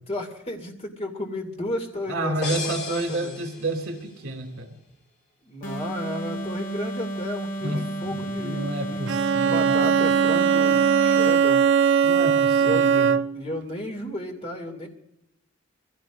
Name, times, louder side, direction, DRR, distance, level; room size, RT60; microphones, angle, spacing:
voice 1, 0.1-2.3 2.6-3.4 5.4-9.0 9.4-11.6 12.5-12.9 13.3-14.9, left 1 dB, 30° left, 3 dB, 2.4 m, -33 dB
voice 2, 2.1-4.7 7.6-9.8 12.0-13.1, right 1 dB, 85° right, 4 dB, 2.8 m, -30 dB
sound 1, 2.4-4.2, left 3 dB, 50° left, 2.7 m, -35 dB
sound 2, 5.6-11.5, right 1 dB, 70° left, 2.0 m, -32 dB
Bowed string instrument, 9.1-13.5, right 7 dB, 60° right, 0.5 m, -20 dB
23.5 x 16.5 x 2.5 m, 0.81 s
head